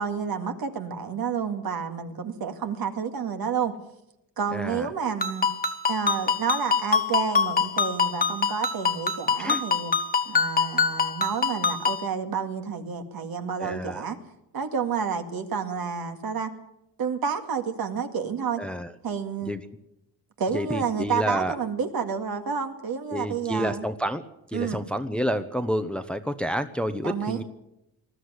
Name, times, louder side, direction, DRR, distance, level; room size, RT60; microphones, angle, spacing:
voice 1, 0.0-3.8 4.4-5.5 5.9-9.9 10.3-14.2 14.5-16.5 17.0-18.6 19.0-19.5 20.4-23.9 24.5-24.8 27.0-27.4, right 6 dB, 55° right, 6 dB, 2.1 m, -30 dB
voice 2, 4.5-4.9 9.4-9.6 13.6-14.0 18.6-18.9 19.5-19.6 20.5-21.5 23.1-24.2 24.5-27.4, equal, ahead, 10 dB, 0.9 m, -29 dB
Ringtone, 5.2-12.1, left 5 dB, 20° left, 1.6 m, -25 dB
20.0 x 13.5 x 9.6 m, 0.87 s
cardioid pair, 115°, 43 cm